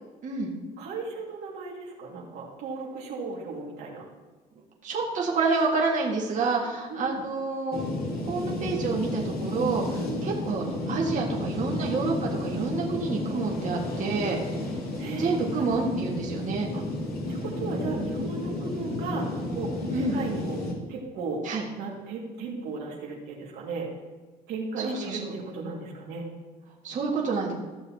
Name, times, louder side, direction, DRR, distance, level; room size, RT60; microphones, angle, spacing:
voice 1, 0.2-0.5 4.8-7.8 8.3-14.4 15.2-16.7 19.9-20.2 21.4-21.6 24.8-25.3 26.8-27.5, right 4 dB, 50° right, -3 dB, 1.9 m, -28 dB
voice 2, 0.8-4.0 6.9-7.2 10.0-10.3 15.0-15.7 16.7-16.8 17.3-20.6 20.9-21.4 21.7-23.9 24.5-26.2, right 3 dB, 80° right, -3 dB, 2.1 m, -36 dB
sound 1, 7.7-20.7, left 2 dB, 60° left, 2.4 m, -32 dB
14.5 x 6.8 x 2.9 m, 1.3 s
cardioid pair, 110°, 17 cm